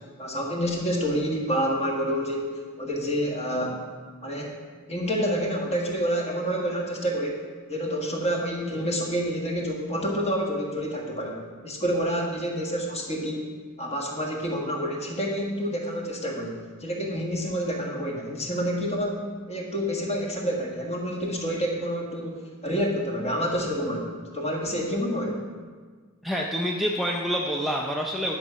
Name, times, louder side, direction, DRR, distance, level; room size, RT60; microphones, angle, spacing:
voice 1, 0.2-3.8 4.2-4.6 4.9-13.5 13.8-25.4, equal, 30° left, -1 dB, 1.6 m, -28 dB
voice 2, 26.2-28.3, equal, ahead, -2 dB, 0.5 m, -27 dB
11.0 x 6.0 x 5.5 m, 1.5 s
head